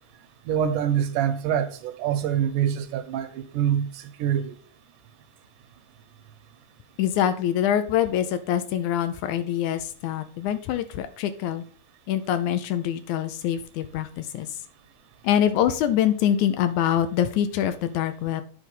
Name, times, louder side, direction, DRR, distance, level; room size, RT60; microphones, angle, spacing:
voice 1, 0.5-4.6, right 9 dB, 85° right, 2.3 m, -25 dB
voice 2, 7.0-11.6 12.1-14.5 15.2-18.4, left 10 dB, 80° left, 1.9 m, -24 dB
9.1 x 3.4 x 5.4 m
omnidirectional pair, 3.6 m